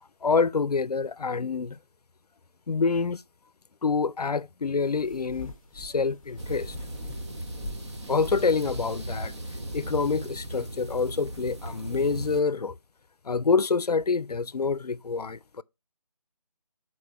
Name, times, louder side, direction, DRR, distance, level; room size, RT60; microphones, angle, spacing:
voice 1, 0.2-1.8 2.7-3.2 3.8-6.8 8.1-9.3 9.7-12.7 13.3-15.6, left 4 dB, 80° left, 0.5 m, -27 dB
sound 1, 4.6-11.0, left 2 dB, 5° left, 1.0 m, -46 dB
sound 2, 6.4-12.4, right 1 dB, 45° right, 1.3 m, -37 dB
6.6 x 4.2 x 4.3 m
figure-of-eight pair, 155°, 20 cm